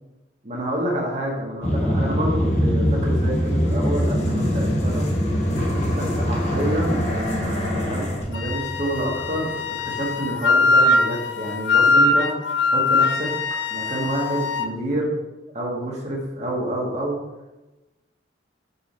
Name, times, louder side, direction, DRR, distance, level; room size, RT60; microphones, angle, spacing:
voice 1, 0.4-5.1 5.9-9.6 9.8-13.3 13.7-15.1 15.5-17.1, right 1 dB, 40° right, -3 dB, 1.7 m, -28 dB
sound 1, 1.6-9.8, equal, 40° left, 1.3 m, -23 dB
Wind instrument woodwind instrument, 8.3-14.7, left 3 dB, 70° left, 0.4 m, -21 dB
5.7 x 4.8 x 4.3 m, 1.1 s
head